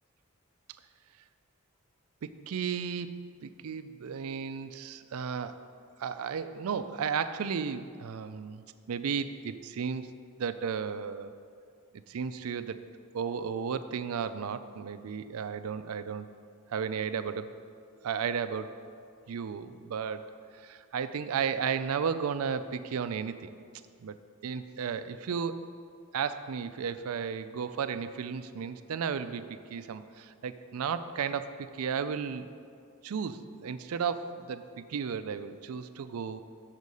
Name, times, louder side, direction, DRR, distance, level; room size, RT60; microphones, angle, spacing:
voice 1, 2.2-5.6 6.0-10.1 10.4-11.3 12.1-12.8 13.1-16.3 16.7-17.5 18.0-18.7 19.3-23.5 24.0-24.2 24.4-25.7 26.1-32.5 33.0-36.4, right 6 dB, 75° right, 12 dB, 0.4 m, -34 dB
7.3 x 6.4 x 5.3 m, 2.2 s
head